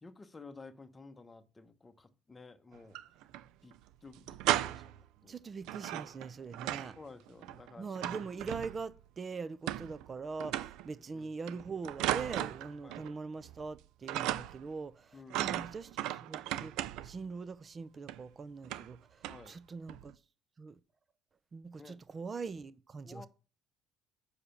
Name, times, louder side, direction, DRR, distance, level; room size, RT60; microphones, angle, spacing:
voice 1, 0.0-3.0 3.6-5.4 7.0-8.0 11.1-11.3 12.8-13.0 15.1-15.6 19.3-19.6 21.8-22.0 23.0-23.3, left 3 dB, 20° left, 0.9 m, -53 dB
sound 1, 2.7-3.4 3.7-3.8 4.1-5.0 5.6-7.0 7.3-9.0 9.7-10.1 10.4-10.9 11.5-13.1 13.4-13.8 14.1-14.7 15.3-17.2 18.1-18.2 18.6-19.0 19.2-19.5 19.9-20.1, right 14 dB, 75° right, 0.4 m, -36 dB
voice 2, 5.3-7.0 7.8-20.1 20.6-20.8 21.5-23.3, right 4 dB, 30° right, 0.6 m, -42 dB
6.7 x 4.9 x 5.6 m
cardioid pair, 110°, 0 cm